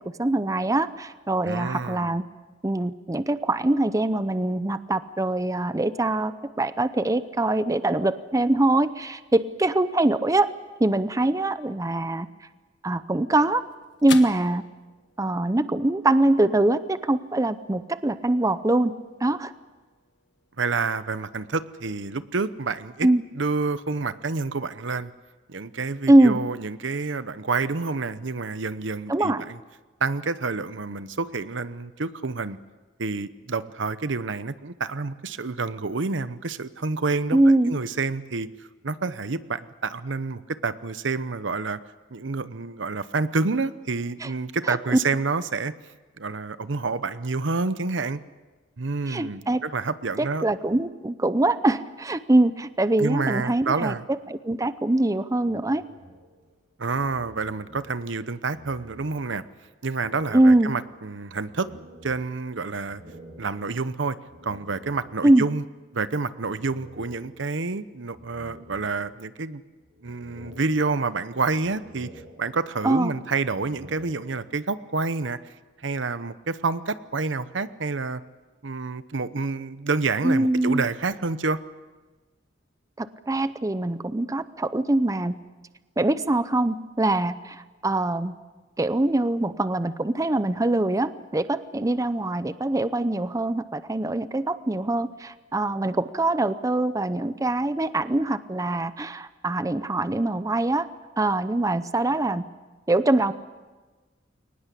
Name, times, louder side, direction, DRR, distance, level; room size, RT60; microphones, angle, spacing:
voice 1, 0.2-2.2 2.6-10.5 10.8-12.3 12.8-13.6 14.0-14.6 15.2-18.9 19.2-19.5 23.0-23.2 26.1-26.4 29.1-29.4 37.3-37.7 44.2-44.3 44.7-44.8 49.1-49.6 50.2-55.8 60.3-60.7 65.2-65.5 72.8-73.2 80.2-80.9 83.0-85.4 86.0-88.3 88.8-100.9 101.2-102.4 102.9-103.3, right 2 dB, 20° right, 13 dB, 0.6 m, -23 dB
voice 2, 1.4-2.1 20.6-23.1 23.4-25.1 25.5-29.6 30.0-32.6 33.0-37.4 37.7-38.5 38.8-41.8 42.1-45.7 46.2-48.2 48.8-50.4 53.0-54.0 56.8-59.4 59.8-61.7 62.0-63.0 63.4-64.2 64.4-65.6 65.9-69.6 70.0-72.1 72.4-75.4 75.8-78.2 78.6-81.6, right 4 dB, 75° right, 14 dB, 0.9 m, -28 dB
sound 1, 12.8-21.4, left 6 dB, 65° left, 1.5 m, -44 dB
sound 2, 55.4-58.2 58.5-59.6 60.0-65.4 66.4-67.7 68.1-69.4 69.8-71.3 71.7-73.0 73.4-74.7, equal, 40° right, 4.9 m, -49 dB
22.5 x 19.5 x 8.4 m, 1.3 s
head